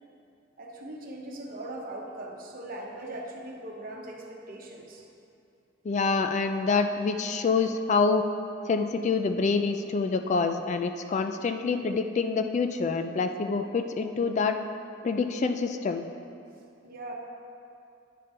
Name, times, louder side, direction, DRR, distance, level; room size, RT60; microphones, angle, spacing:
voice 1, 0.6-5.0 16.8-17.1, right 1 dB, 50° right, 0 dB, 1.0 m, -40 dB
voice 2, 5.8-8.3 8.7-14.6 15.0-16.0, left 4 dB, 40° left, 7 dB, 0.3 m, -26 dB
9.3 x 5.2 x 4.3 m, 2.6 s
head